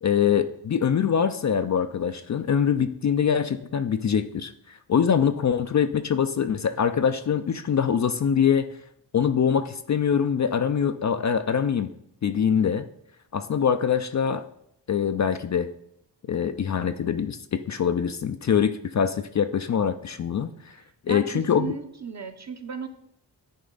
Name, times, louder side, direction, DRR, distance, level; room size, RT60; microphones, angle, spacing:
voice 1, 0.0-8.7 9.1-11.9 12.2-12.9 13.3-14.4 14.9-15.7 16.3-20.8 21.1-21.7, left 7 dB, 45° left, 9 dB, 0.4 m, -24 dB
voice 2, 20.8-22.9, right 5 dB, 40° right, 7 dB, 0.8 m, -35 dB
10.5 x 4.3 x 3.9 m, 0.74 s
cardioid pair, 80°, 43 cm